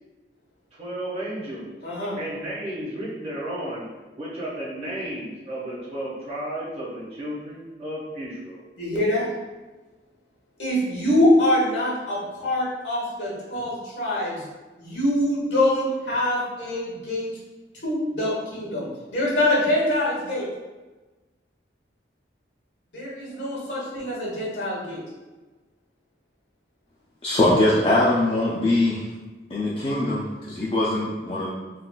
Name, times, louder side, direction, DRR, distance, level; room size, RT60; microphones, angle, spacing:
voice 1, 0.7-1.7 2.1-3.8 4.2-8.6, right 1 dB, 35° right, -8 dB, 1.1 m, -33 dB
voice 2, 1.8-2.2 8.8-9.3 10.6-14.4 14.8-17.3 17.8-20.5 22.9-25.0, left 1 dB, 85° left, -5 dB, 1.1 m, -24 dB
voice 3, 27.2-29.1 29.5-31.5, left 1 dB, 35° left, -7 dB, 0.4 m, -22 dB
3.9 x 2.4 x 2.2 m, 1.2 s
head